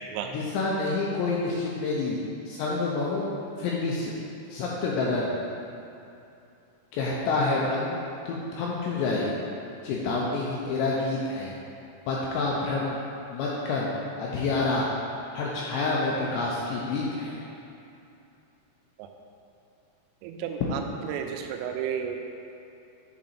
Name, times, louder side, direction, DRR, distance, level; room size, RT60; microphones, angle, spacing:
voice 1, 0.2-2.2 2.5-3.3 3.6-4.1 4.5-5.4 6.9-8.0 8.3-9.3 9.8-11.5 12.1-13.0 13.3-13.9 14.2-14.9 15.3-17.4, left 3 dB, 85° left, -4 dB, 2.6 m, -28 dB
voice 2, 20.2-20.6 21.1-22.2, right 8 dB, 85° right, 4 dB, 3.2 m, -32 dB
8.7 x 4.0 x 4.3 m, 2.7 s
omnidirectional pair, 5.7 m